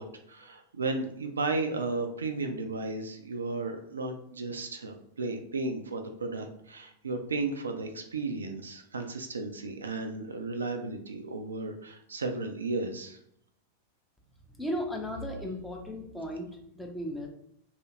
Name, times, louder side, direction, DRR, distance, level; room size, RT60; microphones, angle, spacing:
voice 1, 0.0-13.2, right 3 dB, 70° right, 5 dB, 0.3 m, -34 dB
voice 2, 14.5-16.5 16.7-17.3, equal, 5° left, 0 dB, 0.6 m, -35 dB
2.7 x 2.4 x 2.8 m, 0.70 s
figure-of-eight pair, 90°, 0 cm